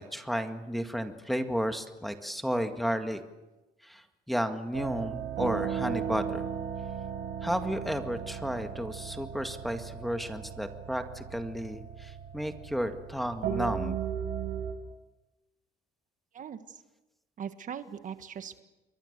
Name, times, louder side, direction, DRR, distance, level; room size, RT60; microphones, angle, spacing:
voice 1, 0.0-3.2 3.8-6.4 7.4-14.0, equal, ahead, 6 dB, 1.9 m, -33 dB
sound 1, 4.7-14.7, right 8 dB, 85° right, 5.1 m, -36 dB
voice 2, 16.3-16.8 17.4-18.6, right 8 dB, 50° right, 9 dB, 1.6 m, -40 dB
29.0 x 22.5 x 6.8 m, 1.1 s
cardioid pair, 110°, 17 cm